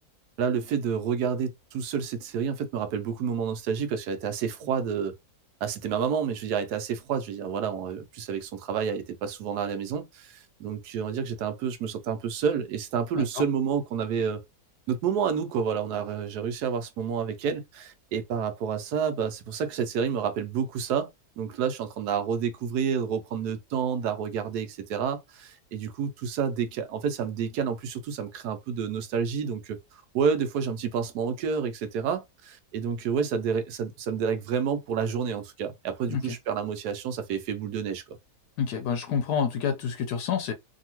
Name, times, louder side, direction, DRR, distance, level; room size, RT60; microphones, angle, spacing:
voice 1, 0.4-5.1 5.6-14.4 14.9-21.1 21.4-38.2, right 7 dB, 80° right, 1.1 m, -29 dB
voice 2, 38.6-40.5, left 7 dB, 80° left, 1.2 m, -28 dB
2.7 x 2.7 x 2.9 m
omnidirectional pair, 1.7 m